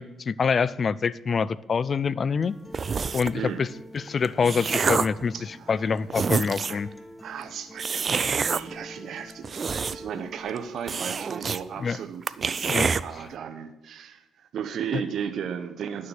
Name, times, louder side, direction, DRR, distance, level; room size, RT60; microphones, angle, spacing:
voice 1, 0.0-2.5 3.1-3.7 3.9-5.3 5.7-6.9 11.8-12.0 12.7-12.9, left 5 dB, 45° left, 20 dB, 0.4 m, -25 dB
Acoustic guitar, 2.4-10.4, left 1 dB, 15° left, 1.1 m, -45 dB
sound 1, 2.7-3.4 4.1-5.2 5.8-5.9 6.1-6.9 7.8-8.6 9.3-10.2 10.5-10.6 10.9-11.6 11.9-12.0 12.3-13.0, right 5 dB, 40° right, 0.4 m, -26 dB
voice 2, 5.3-5.9 6.7-6.8 7.2-16.1, right 8 dB, 65° right, 8 dB, 0.8 m, -35 dB
11.0 x 6.6 x 7.0 m, 0.97 s
cardioid pair, 90°, 0 cm